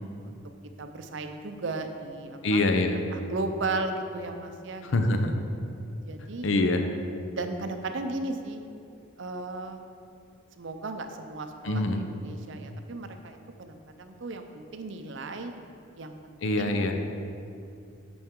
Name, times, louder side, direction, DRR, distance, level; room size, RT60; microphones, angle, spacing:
voice 1, 0.8-2.6 3.1-5.0 6.1-6.5 7.3-8.6 9.2-9.8 10.6-15.5 16.0-17.0, right 2 dB, 60° right, 6 dB, 0.6 m, -35 dB
voice 2, 2.4-3.0 4.8-5.3 6.4-6.9 11.6-12.0 16.4-17.0, left 2 dB, 65° left, 5 dB, 0.6 m, -24 dB
8.6 x 7.0 x 3.7 m, 2.5 s
head